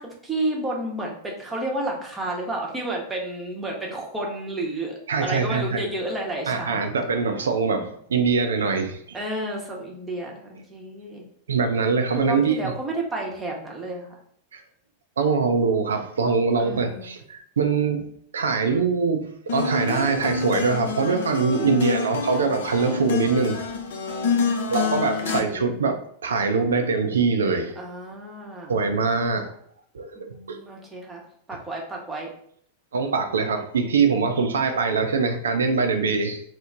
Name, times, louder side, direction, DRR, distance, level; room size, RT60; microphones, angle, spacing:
voice 1, 0.0-6.9 9.1-11.3 12.1-14.1 16.6-17.1 24.3-25.7 27.8-28.8 30.2-31.2 31.5-32.3, right 1 dB, 10° right, -1 dB, 0.8 m, -31 dB
voice 2, 5.1-5.8 6.5-9.2 11.5-12.7 14.5-14.6 15.2-18.1 18.3-23.6 24.7-27.8 28.7-29.5 29.9-30.6 32.9-36.4, right 4 dB, 70° right, 5 dB, 0.4 m, -23 dB
sound 1, 19.5-25.4, left 4 dB, 60° left, 0.5 m, -27 dB
3.0 x 2.0 x 3.8 m, 0.65 s
figure-of-eight pair, 90°, 0 cm